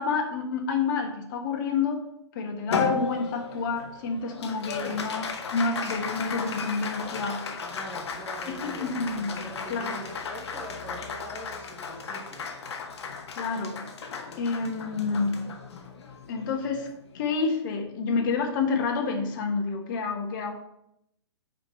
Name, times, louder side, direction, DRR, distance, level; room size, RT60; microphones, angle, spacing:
voice 1, 0.0-2.0 2.3-5.3 5.5-7.4 8.5-10.0 13.4-13.8 14.4-15.4 16.3-16.9 17.1-20.5, left 4 dB, 45° left, 3 dB, 1.4 m, -29 dB
Applause, 2.7-17.4, left 5 dB, 70° left, 1.0 m, -35 dB
voice 2, 4.8-5.1 7.4-12.5, right 1 dB, 15° right, -2 dB, 1.4 m, -43 dB
4.9 x 4.8 x 5.7 m, 0.78 s
hypercardioid pair, 130°, 15 cm